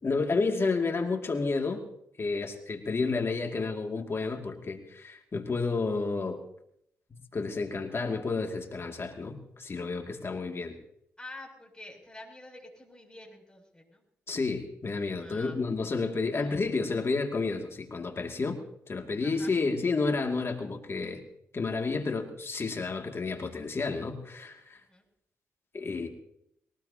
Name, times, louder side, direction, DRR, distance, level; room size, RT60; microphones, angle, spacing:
voice 1, 0.0-1.8 2.2-6.4 7.1-10.8 14.3-18.6 18.9-21.2 21.5-24.8 25.7-26.1, left 4 dB, 45° left, 3 dB, 2.4 m, -31 dB
voice 2, 11.2-14.0 15.2-15.6 16.4-16.5 19.2-19.5 24.9-25.0, left 2 dB, 15° left, 0 dB, 7.2 m, -47 dB
22.0 x 18.5 x 2.9 m, 0.75 s
supercardioid pair, 55°, 6 cm